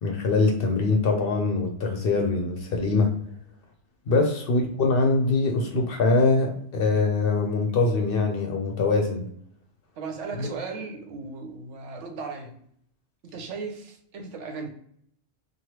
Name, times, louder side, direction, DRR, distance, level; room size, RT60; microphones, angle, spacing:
voice 1, 0.0-3.1 4.1-9.2 10.4-10.5, left 3 dB, 60° left, 2 dB, 0.7 m, -23 dB
voice 2, 9.9-12.6 13.2-14.7, right 4 dB, 75° right, 4 dB, 1.0 m, -36 dB
3.1 x 2.3 x 2.9 m, 0.66 s
omnidirectional pair, 1.2 m